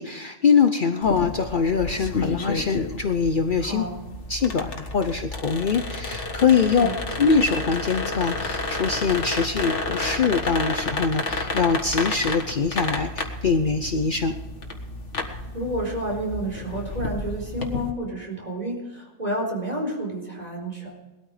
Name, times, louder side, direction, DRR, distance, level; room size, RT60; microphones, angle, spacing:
voice 1, 0.0-3.9 4.3-6.9 7.2-14.3, left 5 dB, 50° left, 6 dB, 0.9 m, -23 dB
sound 1, 1.0-17.9, left 3 dB, 70° left, 1.9 m, -31 dB
voice 2, 3.6-4.0 6.8-6.9 15.2-21.0, right 1 dB, 35° right, -1 dB, 4.5 m, -30 dB
20.0 x 13.0 x 5.0 m, 1.1 s
omnidirectional pair, 1.2 m